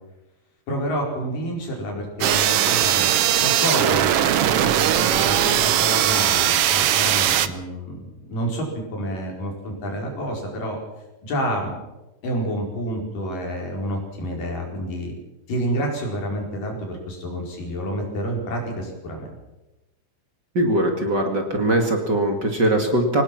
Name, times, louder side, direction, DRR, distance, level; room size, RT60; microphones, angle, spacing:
voice 1, 0.7-10.8 11.2-11.7 12.2-15.1 15.5-19.3, right 1 dB, 85° left, 0 dB, 6.4 m, -29 dB
sound 1, 2.2-7.5, right 11 dB, 75° right, 1.3 m, -19 dB
voice 2, 20.5-23.2, right 1 dB, 35° right, 3 dB, 2.5 m, -21 dB
24.5 x 18.5 x 6.0 m, 1.0 s
omnidirectional pair, 3.8 m